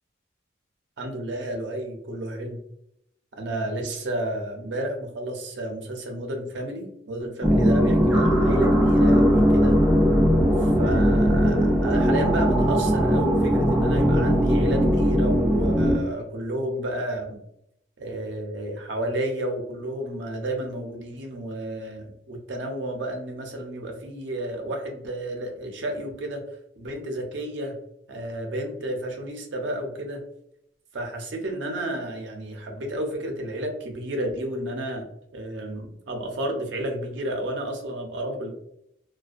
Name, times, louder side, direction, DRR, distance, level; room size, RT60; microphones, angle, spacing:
voice 1, 1.0-2.6 3.4-9.8 10.6-17.4 18.0-26.4 26.8-27.7 28.1-30.2 30.9-35.0 35.3-38.5, right 1 dB, 70° right, 2 dB, 0.5 m, -31 dB
sound 1, 7.4-16.0, equal, 5° right, 0.3 m, -19 dB
2.5 x 2.2 x 2.3 m, 0.75 s
head